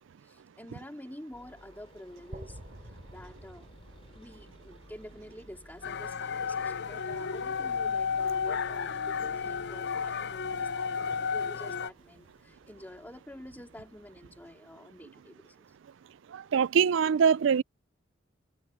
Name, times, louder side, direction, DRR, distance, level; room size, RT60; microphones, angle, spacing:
voice 1, 0.2-3.7 4.1-15.6, left 1 dB, 10° left, 2.4 m, -48 dB
sound 1, 1.3-14.5, left 1 dB, 30° left, 5.3 m, -58 dB
sound 2, 2.3-6.4, equal, 45° right, 2.8 m, -50 dB
sound 3, 5.8-11.9, left 6 dB, 60° left, 0.6 m, -32 dB
voice 2, 16.5-17.6, right 6 dB, 70° right, 0.4 m, -23 dB
head